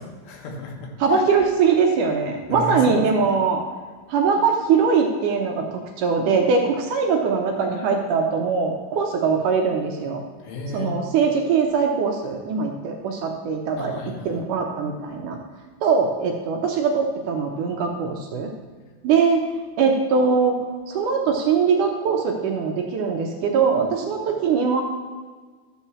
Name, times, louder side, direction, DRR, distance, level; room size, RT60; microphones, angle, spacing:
voice 1, 0.0-1.2 2.5-3.0 10.4-11.0 13.8-14.4, left 2 dB, 80° left, 1 dB, 3.1 m, -33 dB
voice 2, 1.0-3.6 4.1-5.7 6.0-10.2 10.7-13.9 14.3-15.4 15.8-18.5 19.0-19.4 19.8-20.6 20.9-24.8, right 5 dB, 75° right, 2 dB, 2.1 m, -21 dB
12.5 x 4.4 x 7.1 m, 1.5 s
omnidirectional pair, 4.2 m